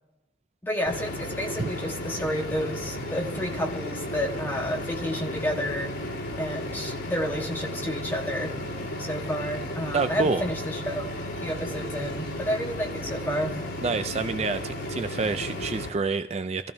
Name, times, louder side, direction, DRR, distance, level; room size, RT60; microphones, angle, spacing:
voice 1, 0.6-5.9 6.4-8.5 9.0-11.1 11.4-13.5, equal, 10° left, 0 dB, 1.4 m, -30 dB
sound 1, 0.9-15.9, left 1 dB, 85° left, 2.9 m, -34 dB
voice 2, 9.9-10.4 13.8-16.7, right 4 dB, 35° right, 9 dB, 0.4 m, -28 dB
25.0 x 14.0 x 2.7 m, 0.97 s
head